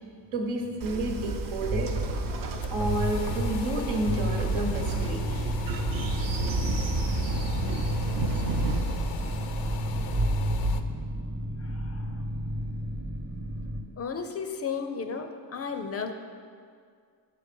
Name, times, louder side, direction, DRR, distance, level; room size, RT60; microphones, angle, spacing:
voice 1, 0.3-2.0 2.7-5.5, right 1 dB, 80° right, 1 dB, 1.2 m, -30 dB
Train, 0.8-10.8, right 2 dB, 45° right, 0.7 m, -29 dB
sound 1, 2.4-10.8, left 9 dB, 85° left, 0.5 m, -42 dB
sound 2, 4.0-13.8, equal, 30° right, 1.0 m, -34 dB
voice 2, 11.6-12.2 14.0-16.1, left 5 dB, 35° left, 6 dB, 0.4 m, -34 dB
6.0 x 4.8 x 5.3 m, 2.1 s
cardioid pair, 90°, 46 cm